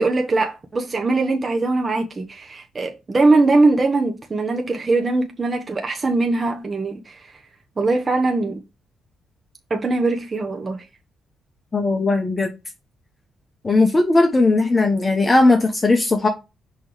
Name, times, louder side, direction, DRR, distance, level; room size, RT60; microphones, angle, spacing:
voice 1, 0.0-7.3 7.8-8.6 9.7-10.8, right 3 dB, 30° right, 1.0 m, -21 dB
voice 2, 11.7-12.5 13.6-16.3, left 2 dB, 25° left, 1.1 m, -17 dB
6.1 x 3.2 x 4.9 m
cardioid pair, 90°, 0 cm